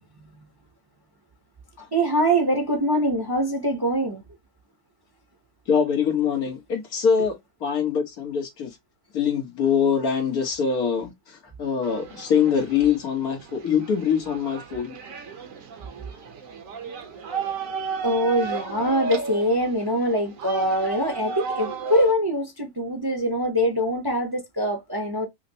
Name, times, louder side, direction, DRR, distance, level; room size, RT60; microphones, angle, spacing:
voice 1, 1.9-4.2 18.0-25.3, equal, 25° right, 0.5 m, -23 dB
voice 2, 5.7-7.3 7.6-8.7 9.1-14.9, left 7 dB, 90° left, 1.7 m, -24 dB
sound 1, 11.8-22.1, right 4 dB, 65° right, 1.3 m, -34 dB
5.6 x 2.0 x 2.7 m
omnidirectional pair, 1.5 m